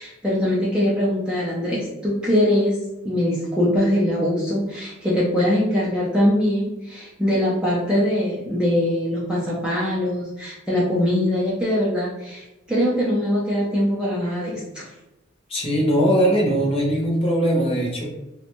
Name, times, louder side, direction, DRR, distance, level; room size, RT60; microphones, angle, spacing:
voice 1, 0.0-2.8 3.0-14.9, left 1 dB, 5° right, -7 dB, 0.4 m, -22 dB
voice 2, 15.5-18.1, equal, 30° left, -3 dB, 0.7 m, -20 dB
2.5 x 2.1 x 2.9 m, 1.0 s
head